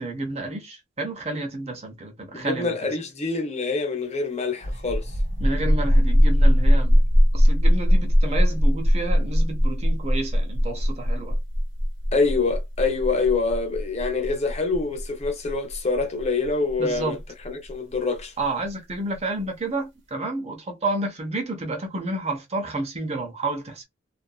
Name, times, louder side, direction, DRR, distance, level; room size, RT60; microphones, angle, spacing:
voice 1, 0.0-2.9 5.4-7.0 7.3-11.4 16.8-17.2 18.4-23.8, right 2 dB, 35° right, 0.7 m, -30 dB
voice 2, 2.3-5.2 12.1-17.2 17.4-18.3, left 4 dB, 35° left, 0.7 m, -25 dB
sound 1, 4.5-17.9, equal, 75° right, 1.0 m, -20 dB
2.7 x 2.5 x 2.3 m
head